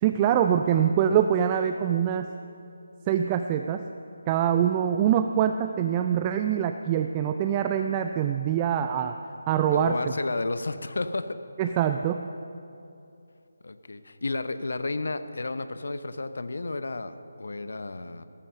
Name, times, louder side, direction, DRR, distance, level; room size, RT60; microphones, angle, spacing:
voice 1, 0.0-2.3 3.1-3.8 4.3-9.2 9.5-10.0 11.6-12.2, right 9 dB, 20° right, 7 dB, 0.4 m, -24 dB
voice 2, 9.7-11.4 13.6-18.2, left 2 dB, 65° left, 11 dB, 0.8 m, -32 dB
17.0 x 14.5 x 5.6 m, 2.6 s
figure-of-eight pair, 155°, 0 cm